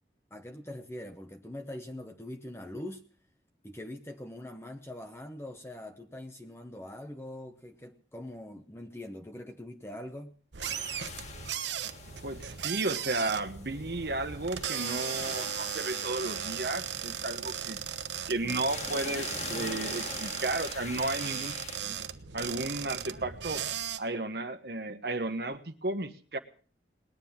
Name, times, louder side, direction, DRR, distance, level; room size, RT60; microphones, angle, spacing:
voice 1, 0.3-3.0 3.6-10.4, left 1 dB, 15° left, 0.9 m, -43 dB
sound 1, 10.5-24.0, right 9 dB, 85° right, 1.1 m, -37 dB
sound 2, 10.6-21.8, left 3 dB, 40° left, 2.0 m, -43 dB
voice 2, 12.2-17.8 18.3-21.5 21.8-22.0 22.3-23.6 24.0-26.4, right 2 dB, 65° right, 1.3 m, -33 dB
20.0 x 10.0 x 7.3 m
head